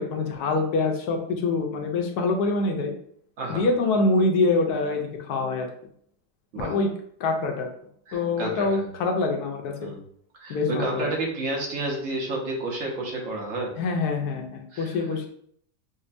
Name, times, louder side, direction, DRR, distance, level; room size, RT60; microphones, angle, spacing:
voice 1, 0.0-2.9 3.5-5.7 6.6-6.9 7.2-7.7 8.1-9.9 10.5-11.1 13.8-15.3, left 3 dB, 70° left, 3 dB, 1.1 m, -25 dB
voice 2, 8.1-8.8 9.8-10.0 10.4-13.7 14.7-14.9, right 2 dB, 55° right, -1 dB, 1.1 m, -30 dB
5.2 x 2.2 x 2.5 m, 0.65 s
omnidirectional pair, 1.8 m